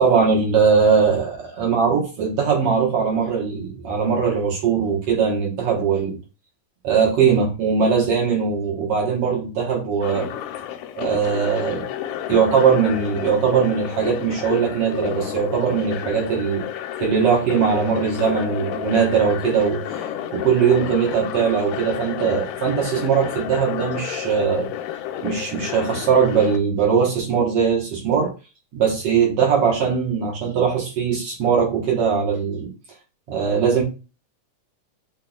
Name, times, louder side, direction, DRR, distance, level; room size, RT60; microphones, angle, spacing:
voice 1, 0.0-6.2 6.8-10.3 11.0-11.8 12.3-16.7 17.0-20.0 20.3-24.7 25.2-28.3 28.7-32.7 33.3-33.8, right 6 dB, 60° right, -1 dB, 1.6 m, -20 dB
sound 1, 10.0-26.6, left 11 dB, 80° left, 1.9 m, -31 dB
7.8 x 2.9 x 2.3 m, 0.31 s
omnidirectional pair, 4.0 m